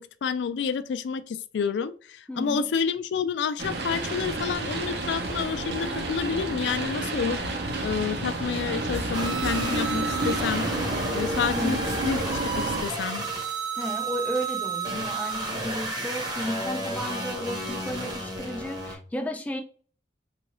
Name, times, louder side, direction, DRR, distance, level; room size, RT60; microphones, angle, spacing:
voice 1, 0.0-7.4 7.8-10.7 11.1-12.2 12.5-13.2, left 6 dB, 80° left, 0.3 m, -29 dB
voice 2, 2.3-2.7 11.5-11.9 13.8-19.6, equal, 10° left, 0.4 m, -33 dB
sound 1, 3.6-12.8, right 2 dB, 70° right, 0.7 m, -30 dB
sound 2, 9.1-19.0, right 2 dB, 25° right, 0.7 m, -31 dB
3.8 x 2.4 x 3.0 m
head